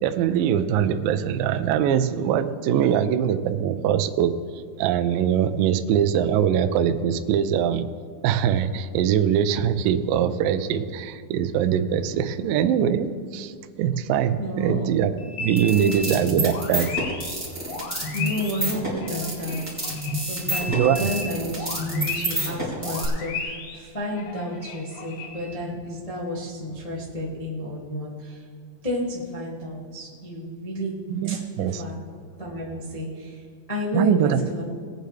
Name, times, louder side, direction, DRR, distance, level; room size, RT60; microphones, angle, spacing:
voice 1, 0.0-7.9 8.2-15.1 15.4-16.9 20.7-21.1 31.1-31.8 33.9-34.4, right 9 dB, 80° right, 9 dB, 2.0 m, -22 dB
voice 2, 14.4-14.8 15.8-16.0 18.1-20.0 20.3-28.4 28.8-31.0 31.3-32.0 32.3-34.6, left 1 dB, 25° left, -6 dB, 0.7 m, -31 dB
sound 1, 15.2-25.6, left 4 dB, 85° left, 3.4 m, -35 dB
sound 2, 15.6-23.1, right 1 dB, 5° right, 2.4 m, -29 dB
20.0 x 9.2 x 3.3 m, 2.1 s
omnidirectional pair, 4.7 m